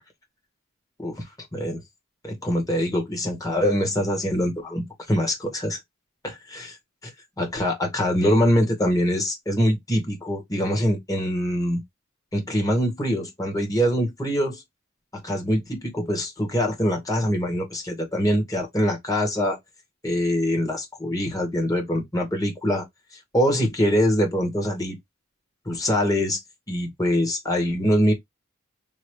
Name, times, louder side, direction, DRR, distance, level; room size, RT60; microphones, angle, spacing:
voice 1, 2.2-5.8 6.2-6.8 7.0-7.1 7.4-11.8 12.3-14.6 15.2-19.6 20.0-22.9 23.3-25.0 25.6-26.4 26.7-28.1, equal, 15° left, 1.6 m, -24 dB
3.9 x 2.7 x 3.2 m
head